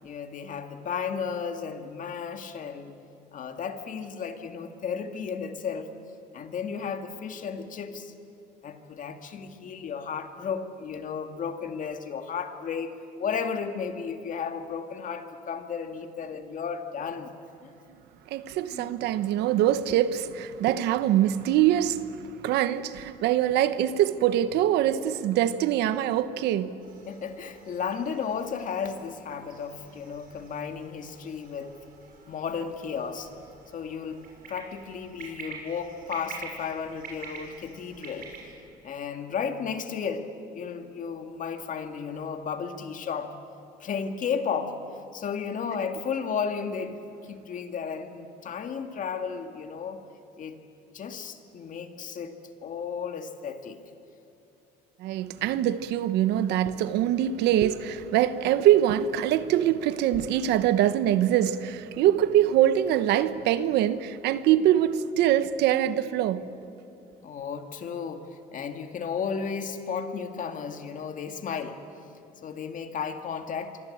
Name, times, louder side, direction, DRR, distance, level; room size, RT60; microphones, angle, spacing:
voice 1, 0.0-3.0 3.3-5.9 6.3-8.1 8.6-17.3 17.6-17.7 18.7-18.9 27.1-31.8 32.3-33.3 33.7-38.3 38.8-40.3 40.5-43.4 43.8-44.8 45.1-50.1 50.4-50.6 50.9-52.4 52.6-53.8 67.2-71.8 72.4-73.8, left 6 dB, 50° left, 2.2 m, -34 dB
voice 2, 18.3-26.8 55.0-66.5, right 11 dB, 85° right, 1.1 m, -24 dB
sound 1, 26.8-38.5, right 5 dB, 60° right, 6.7 m, -47 dB
26.5 x 24.5 x 8.7 m
cardioid pair, 110°, 17 cm